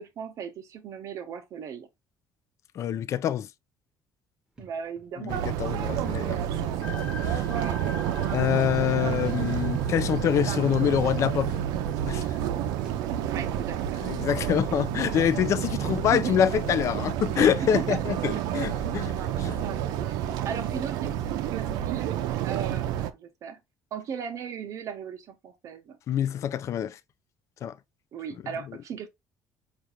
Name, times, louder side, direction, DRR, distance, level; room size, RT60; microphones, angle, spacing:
voice 1, 0.0-1.9 4.6-5.4 7.5-7.8 13.3-14.1 15.8-16.4 17.4-18.0 18.4-18.5 20.4-22.1 22.4-23.6 23.9-26.0 28.1-29.1, right 7 dB, 55° right, 0.8 m, -36 dB
voice 2, 2.8-3.5 5.2-6.4 6.9-7.0 7.3-7.4 8.3-11.5 12.1-12.2 14.0-19.1 19.4-19.6 26.1-27.0 27.6-27.7, left 9 dB, 50° left, 0.4 m, -26 dB
sound 1, 4.6-5.1 5.4-5.8 7.1-8.1 9.3-10.3 10.6-13.6 14.6-14.7 15.3-15.6 16.0-16.2 16.6-16.8 17.6-19.1 19.4-21.3, right 1 dB, 10° right, 1.1 m, -47 dB
sound 2, 5.3-23.1, right 10 dB, 85° right, 0.4 m, -29 dB
sound 3, 6.8-13.0, left 4 dB, 20° left, 1.3 m, -44 dB
5.0 x 2.4 x 2.8 m
cardioid pair, 125°, 7 cm